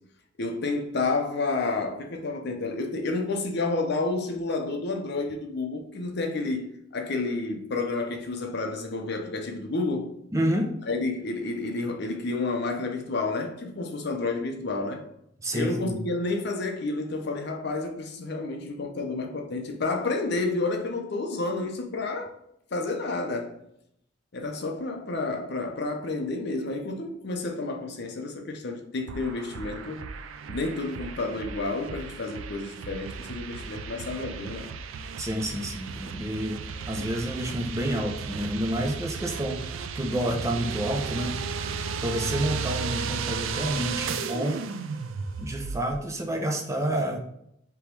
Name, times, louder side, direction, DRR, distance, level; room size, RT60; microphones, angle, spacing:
voice 1, 0.4-10.1 10.9-15.0 15.5-22.3 22.7-23.5 24.3-30.0 30.5-34.7, left 3 dB, 55° left, 0.6 m, -30 dB
voice 2, 10.3-10.7 15.4-16.0 35.2-41.4 42.0-44.7 45.4-47.2, right 1 dB, 15° right, 0.4 m, -29 dB
sound 1, 29.1-46.0, right 5 dB, 85° right, 0.4 m, -35 dB
3.5 x 3.0 x 4.5 m
head